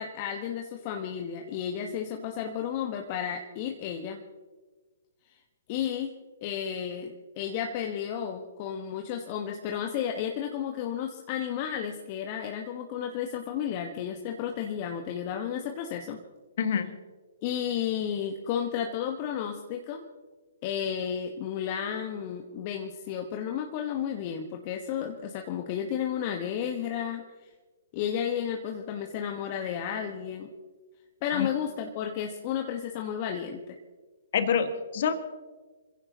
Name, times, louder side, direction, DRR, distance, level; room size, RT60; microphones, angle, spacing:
voice 1, 0.0-4.2 5.7-6.1 6.4-16.2 17.4-20.1 20.6-27.2 27.9-30.5 31.2-33.8, left 8 dB, 40° left, 3 dB, 1.3 m, -32 dB
voice 2, 16.6-16.9 31.3-31.5 34.3-35.1, left 7 dB, 55° left, 9 dB, 1.7 m, -26 dB
27.0 x 16.0 x 2.9 m, 1.3 s
figure-of-eight pair, 125°, 0 cm